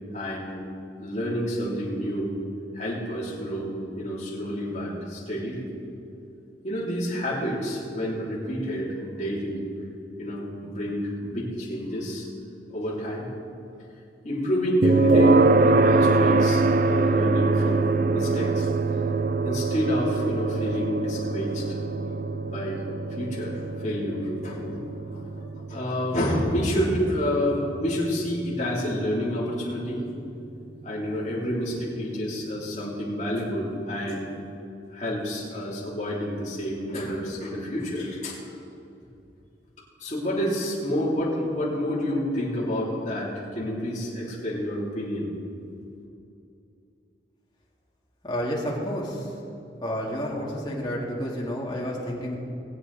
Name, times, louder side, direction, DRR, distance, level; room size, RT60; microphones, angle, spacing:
voice 1, 0.1-0.5 1.0-2.3 2.7-5.7 6.6-9.6 10.2-12.3 12.7-13.3 14.2-18.7 19.4-21.8 22.4-22.8 23.2-24.8 25.1-30.0 30.8-34.3 34.9-38.4 40.0-45.3, equal, 40° left, -6 dB, 3.2 m, -29 dB
sound 1, 14.8-29.8, right 3 dB, 50° right, 0.4 m, -24 dB
voice 2, 48.2-49.3 49.8-52.4, equal, 25° left, -4 dB, 2.3 m, -30 dB
21.0 x 8.4 x 4.1 m, 2.6 s
head